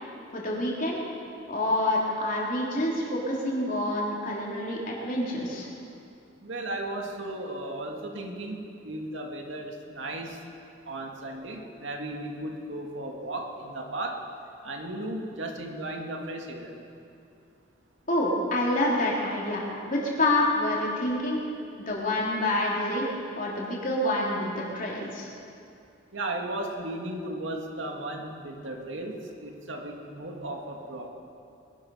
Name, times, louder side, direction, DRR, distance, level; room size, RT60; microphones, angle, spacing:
voice 1, 0.3-1.0 1.5-5.7 18.1-21.4 21.7-23.0 23.3-25.3, left 1 dB, 45° left, -4 dB, 3.5 m, -27 dB
voice 2, 6.4-10.4 10.9-14.2 14.6-16.7 26.1-31.1, right 1 dB, 85° right, 1 dB, 2.1 m, -35 dB
22.5 x 11.5 x 5.6 m, 2.5 s
head